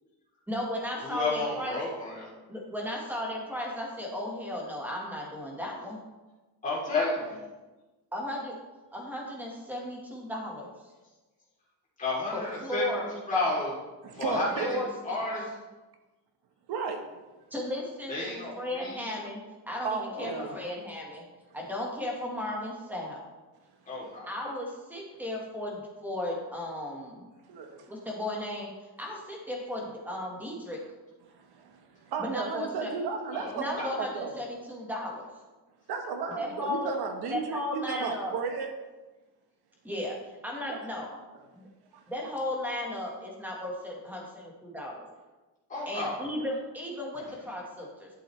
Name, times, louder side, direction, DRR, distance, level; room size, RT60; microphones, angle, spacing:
voice 1, 0.5-1.8 2.5-6.0 8.1-8.5 8.9-10.7 12.3-13.0 14.3-14.9 17.5-19.4 19.7-21.3 21.5-23.2 24.3-27.3 27.9-28.7 29.0-30.8 32.2-32.9 33.5-35.3 36.3-36.9 37.3-38.3 39.8-41.1 41.5-41.6 42.1-44.2 44.6-45.0 45.8-48.1, left 1 dB, 5° right, -2 dB, 1.6 m, -35 dB
voice 2, 1.0-2.3 6.6-7.4 12.0-12.9 13.3-13.7 14.1-15.5 18.1-19.0 20.1-20.5 23.9-24.3 33.3-33.5 45.7-46.2, left 2 dB, 20° left, -7 dB, 3.2 m, -31 dB
voice 3, 14.0-14.8 16.7-17.0 19.8-20.5 27.5-27.8 31.3-34.4 35.9-38.7 40.7-40.8, right 5 dB, 60° right, 5 dB, 1.3 m, -34 dB
11.5 x 7.6 x 3.3 m, 1.2 s
cardioid pair, 175°, 42 cm